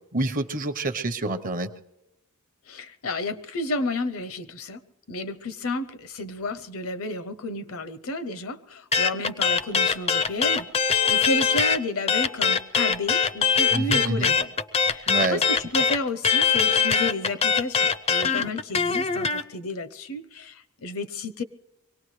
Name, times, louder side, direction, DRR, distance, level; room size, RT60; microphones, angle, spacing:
voice 1, 0.1-1.7 13.7-14.3 15.1-15.4, right 2 dB, 40° right, 10 dB, 0.8 m, -27 dB
voice 2, 2.7-4.8 5.1-21.4, left 2 dB, 65° left, 13 dB, 0.7 m, -31 dB
sound 1, 8.9-11.8 12.1-19.4, left 6 dB, 30° left, 0.5 m, -22 dB
24.0 x 18.0 x 3.2 m, 0.91 s
head